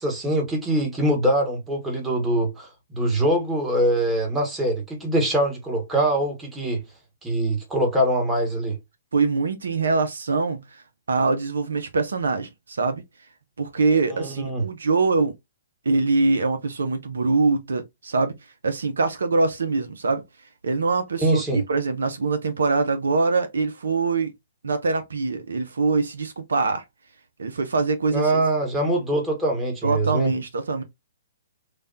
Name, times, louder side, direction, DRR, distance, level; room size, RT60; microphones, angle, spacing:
voice 1, 0.0-2.7 2.9-6.8 7.2-8.8 14.2-14.6 21.2-21.6 28.1-30.3, right 1 dB, 10° right, 1.1 m, -23 dB
voice 2, 9.1-13.0 13.6-15.3 15.8-18.4 18.6-20.2 20.6-24.3 24.6-26.8 27.4-28.4 28.8-28.9 29.8-30.8, right 3 dB, 80° right, 0.5 m, -23 dB
3.2 x 2.2 x 2.6 m
hypercardioid pair, 130°, 0 cm